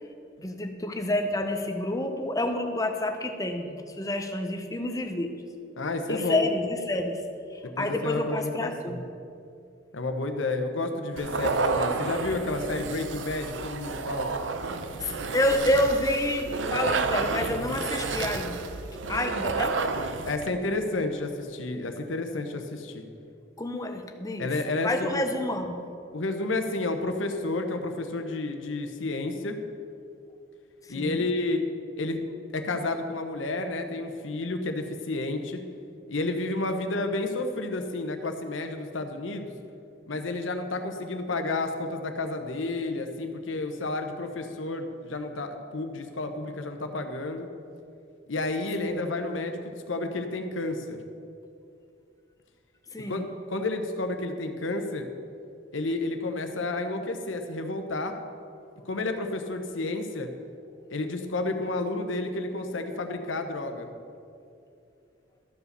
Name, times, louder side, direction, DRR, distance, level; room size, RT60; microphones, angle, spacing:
voice 1, 0.4-5.4 6.1-9.1 15.0-18.7 19.1-19.8 23.6-24.6 24.8-25.9 30.8-31.3 48.8-49.0 52.9-53.2, left 1 dB, 20° left, 6 dB, 0.7 m, -29 dB
voice 2, 5.8-6.5 7.8-9.0 9.9-14.3 20.3-23.1 24.4-25.2 26.1-29.6 30.9-31.7 32.0-32.2 32.5-35.6 36.1-39.5 40.1-47.5 48.3-51.0 53.1-53.2 53.5-55.0 55.7-58.1 58.8-60.3 60.9-63.9, left 2 dB, 90° left, 6 dB, 1.0 m, -31 dB
sound 1, 11.2-20.5, right 4 dB, 80° right, 0.6 m, -30 dB
13.0 x 5.0 x 6.7 m, 2.5 s
head